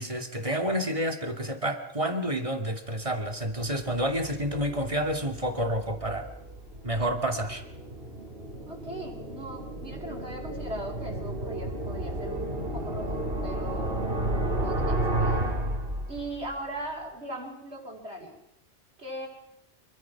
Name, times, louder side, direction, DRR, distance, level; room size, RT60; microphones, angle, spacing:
voice 1, 0.0-6.3 6.8-7.6, equal, 30° right, 4 dB, 2.7 m, -29 dB
sound 1, 3.7-16.5, right 1 dB, 60° right, 4.1 m, -32 dB
voice 2, 8.7-14.1 14.5-15.5 16.1-18.4 19.0-19.3, right 1 dB, 85° right, -1 dB, 5.2 m, -39 dB
27.0 x 24.0 x 6.0 m, 0.78 s
omnidirectional pair, 1.1 m